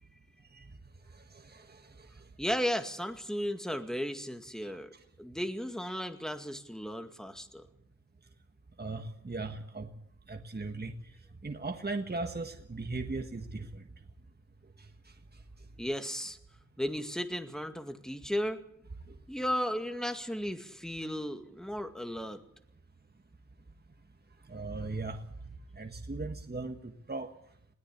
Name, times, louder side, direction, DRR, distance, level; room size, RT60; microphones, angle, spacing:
voice 1, 1.4-2.1 4.6-4.8 8.8-9.9 10.3-10.9 11.4-13.8 24.5-25.2 25.7-27.3, right 3 dB, 35° right, 5 dB, 1.6 m, -38 dB
voice 2, 2.4-4.9 5.2-7.7 15.8-16.4 16.8-18.6 19.3-22.4, equal, ahead, 7 dB, 2.1 m, -35 dB
21.0 x 17.5 x 8.4 m, 0.73 s
wide cardioid pair, 75°, 30 cm